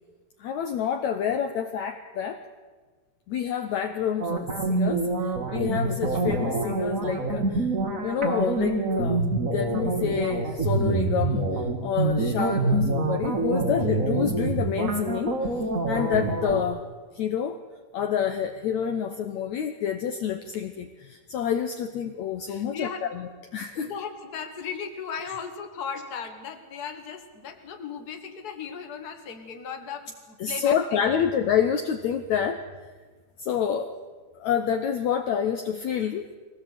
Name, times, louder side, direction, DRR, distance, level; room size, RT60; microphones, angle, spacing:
voice 1, 0.4-2.4 3.3-7.7 8.0-9.2 9.5-15.5 15.9-16.8 17.1-17.6 17.9-23.9 30.4-32.6 33.4-33.9 34.4-36.3, left 8 dB, 65° left, 5 dB, 2.0 m, -28 dB
sound 1, 4.2-16.6, right 2 dB, 30° right, 1.8 m, -26 dB
voice 2, 22.5-23.1 23.7-31.3 32.2-32.5, left 6 dB, 35° left, 5 dB, 1.9 m, -37 dB
23.0 x 18.0 x 8.6 m, 1.3 s
omnidirectional pair, 4.1 m